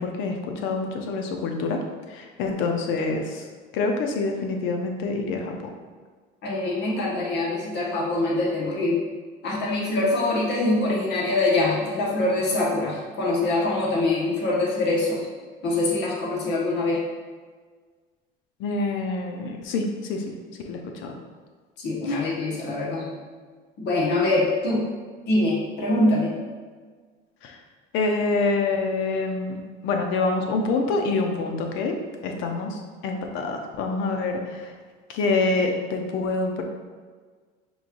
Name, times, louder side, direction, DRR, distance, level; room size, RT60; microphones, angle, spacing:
voice 1, 0.0-1.8 2.1-3.4 3.7-5.7 18.6-20.3 20.6-21.2 27.4-27.6 27.9-32.0 32.2-34.7 35.1-36.6, left 3 dB, 70° left, 3 dB, 0.7 m, -26 dB
voice 2, 6.4-9.0 9.4-15.2 15.6-17.0 21.8-23.1 23.8-24.9 25.3-26.3, left 2 dB, 55° left, -5 dB, 1.3 m, -24 dB
5.1 x 3.1 x 2.5 m, 1.5 s
cardioid pair, 105°, 21 cm